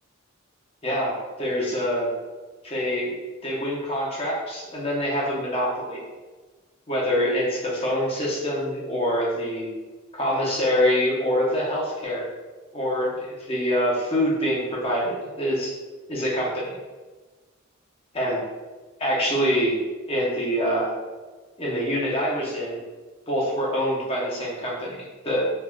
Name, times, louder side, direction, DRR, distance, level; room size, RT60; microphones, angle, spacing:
voice 1, 0.8-2.1 2.6-3.1 3.4-6.0 6.9-9.7 10.1-12.2 12.7-15.7 16.1-16.8 18.1-18.4 19.0-19.7 20.1-20.9 21.6-22.8 23.3-25.5, equal, 30° left, -4 dB, 0.7 m, -25 dB
3.4 x 2.3 x 2.2 m, 1.3 s
head